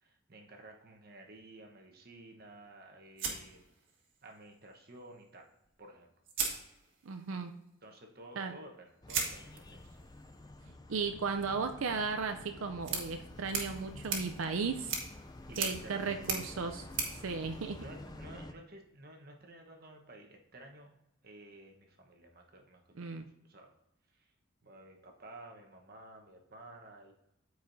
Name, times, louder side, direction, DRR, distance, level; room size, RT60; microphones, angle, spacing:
voice 1, 0.0-3.6 4.2-5.5 5.8-6.1 7.8-10.0 15.4-16.3 17.8-21.0 21.2-23.7 24.1-24.3 24.6-27.1, right 1 dB, 45° right, 2 dB, 1.1 m, -53 dB
sound 1, 3.2-4.3 5.6-5.7 6.2-7.3 9.1-18.3, right 5 dB, 65° right, 1.6 m, -40 dB
voice 2, 7.0-7.5 8.4-8.5 10.9-15.0 15.6-17.8 23.0-23.3, right 5 dB, 80° right, 6 dB, 0.5 m, -35 dB
sound 2, 9.0-18.5, left 2 dB, 20° left, 0.4 m, -49 dB
13.5 x 4.7 x 2.7 m, 0.86 s
head